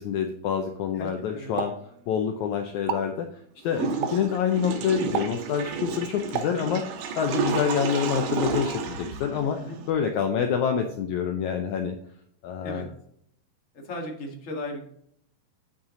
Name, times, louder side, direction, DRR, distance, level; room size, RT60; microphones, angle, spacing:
voice 1, 0.0-1.7 2.1-3.3 3.6-6.8 7.2-9.6 9.9-11.9 12.4-12.9, left 7 dB, 85° left, 4 dB, 1.6 m, -27 dB
voice 2, 0.9-1.6 9.6-9.8 12.6-12.8 13.8-14.9, left 1 dB, 30° left, 0 dB, 1.4 m, -36 dB
Explosion, 1.6-2.4 2.8-3.2 4.0-4.4 5.1-5.5 6.4-7.1 7.5-7.8, right 8 dB, 90° right, 2.8 m, -33 dB
Water / Toilet flush, 3.7-9.9, right 5 dB, 65° right, 2.5 m, -31 dB
8.9 x 7.2 x 3.8 m, 0.68 s
omnidirectional pair, 4.3 m